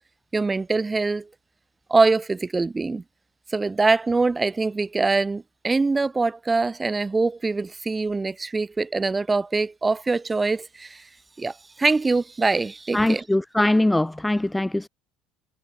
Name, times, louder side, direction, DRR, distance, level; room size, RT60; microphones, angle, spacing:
voice 1, 0.3-1.3 1.9-3.0 3.5-11.0 11.4-13.2, right 3 dB, 20° right, 2.1 m, -23 dB
voice 2, 12.9-14.9, left 1 dB, 10° left, 0.7 m, -22 dB
supercardioid pair, 85°, 0 cm